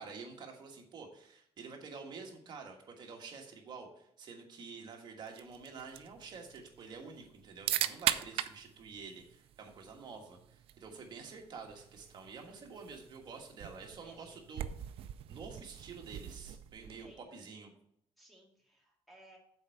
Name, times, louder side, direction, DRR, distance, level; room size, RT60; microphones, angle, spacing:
voice 1, 0.0-14.7 15.3-17.7, right 5 dB, 40° right, 2 dB, 1.5 m, -48 dB
sound 1, 5.3-17.2, right 12 dB, 60° right, 0.4 m, -41 dB
voice 2, 13.9-14.5 16.8-17.4 18.2-19.4, right 1 dB, ahead, -2 dB, 2.1 m, -61 dB
7.1 x 4.5 x 6.6 m, 0.73 s
cardioid pair, 150°, 11 cm